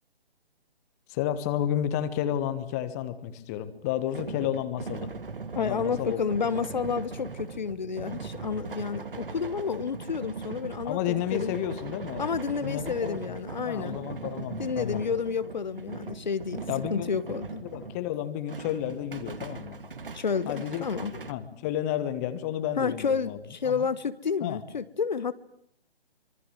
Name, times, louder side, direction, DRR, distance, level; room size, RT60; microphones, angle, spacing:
voice 1, 1.1-5.1 5.6-6.2 10.8-12.3 12.6-13.4 13.6-15.0 16.7-17.1 17.6-19.8 20.5-20.8 21.1-23.4 23.6-23.9 24.4-24.6, left 11 dB, 15° left, 1.3 m, -31 dB
sound 1, 3.9-18.1 18.5-21.3, right 4 dB, 55° right, 2.6 m, -39 dB
voice 2, 5.5-11.6 12.2-14.0 14.6-17.6 20.1-21.1 22.8-25.3, left 6 dB, 45° left, 1.2 m, -30 dB
25.5 x 24.5 x 9.0 m
figure-of-eight pair, 140°, 32 cm